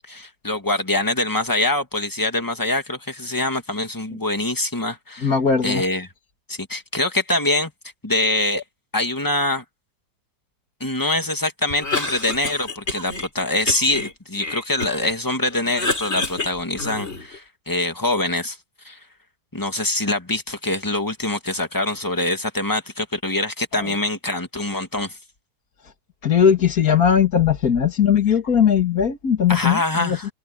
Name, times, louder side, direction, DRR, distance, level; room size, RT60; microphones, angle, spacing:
voice 1, 0.1-5.3 5.6-6.1 6.5-7.7 8.0-8.6 8.9-9.6 10.8-18.6 18.8-19.0 19.5-25.2 29.5-30.3, left 2 dB, 15° left, 1.8 m, -24 dB
voice 2, 5.2-5.8 26.2-30.2, left 8 dB, 65° left, 2.5 m, -18 dB
Cough, 11.7-13.3 13.7-15.1 15.5-17.4, left 2 dB, 40° left, 4.2 m, -29 dB
omnidirectional pair, 1.7 m